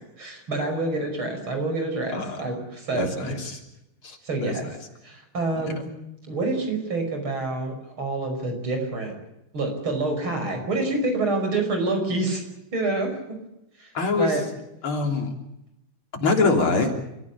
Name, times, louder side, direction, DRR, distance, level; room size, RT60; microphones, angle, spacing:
voice 1, 0.2-3.4 4.2-4.7 5.0-5.9 6.3-9.1 9.5-12.4 12.7-13.4 13.8-13.9 14.2-14.4, right 2 dB, 70° right, 4 dB, 6.3 m, -27 dB
voice 2, 2.9-3.6 4.0-4.5 5.6-5.7 13.9-14.4 14.8-15.3 16.2-16.9, left 3 dB, 70° left, 4 dB, 4.1 m, -24 dB
29.5 x 15.0 x 8.4 m, 0.88 s
omnidirectional pair, 2.4 m